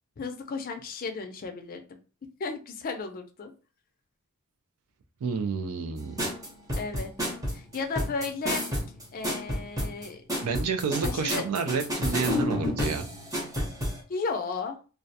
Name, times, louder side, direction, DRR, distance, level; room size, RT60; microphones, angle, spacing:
voice 1, 0.2-1.8 2.4-3.5 6.7-7.1 7.5-8.7 9.1-10.2 11.0-11.5 14.1-14.8, left 4 dB, 40° left, 6 dB, 0.4 m, -34 dB
voice 2, 5.2-6.2 10.4-13.1, right 5 dB, 90° right, 8 dB, 0.4 m, -30 dB
sound 1, 6.2-14.0, equal, 15° right, 0.7 m, -30 dB
2.3 x 2.1 x 2.7 m, 0.34 s
head